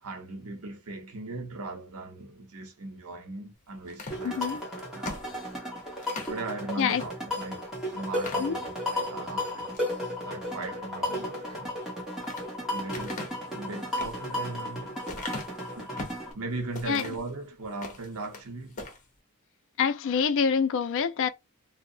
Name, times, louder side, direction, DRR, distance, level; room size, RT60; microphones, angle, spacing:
voice 1, 0.0-5.6 6.3-9.8 10.2-11.8 12.7-13.2 13.5-15.0 15.7-15.9 16.3-18.8, right 2 dB, 75° right, 0.8 m, -39 dB
sound 1, 3.9-6.4 7.0-7.1 7.5-7.6 8.1-9.0 9.5-9.9 11.7-12.5 12.9-16.3 16.7-17.3 17.7-18.5 18.7-19.0, left 3 dB, 35° left, 0.8 m, -41 dB
sound 2, 4.1-16.3, left 1 dB, ahead, 1.1 m, -34 dB
voice 2, 4.2-4.6 6.8-7.0 8.3-8.6 11.2-11.3 16.9-17.0 19.8-21.3, left 6 dB, 60° left, 0.4 m, -26 dB
2.7 x 2.0 x 2.5 m
head